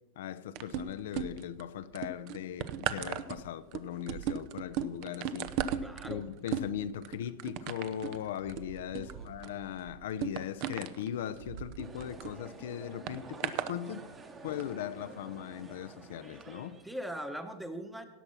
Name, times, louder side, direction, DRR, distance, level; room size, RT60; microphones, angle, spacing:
voice 1, 0.2-5.6 6.1-14.0 14.4-16.8, left 10 dB, 80° left, 0.6 m, -39 dB
sound 1, 0.6-1.6 1.9-12.3 13.1-13.7 14.5-14.6, right 9 dB, 50° right, 0.6 m, -37 dB
voice 2, 5.8-6.3 9.0-9.3 16.8-18.0, equal, 5° right, 1.0 m, -40 dB
sound 2, 11.8-17.0, right 3 dB, 20° right, 1.1 m, -50 dB
17.0 x 6.1 x 5.7 m
supercardioid pair, 140°, 0 cm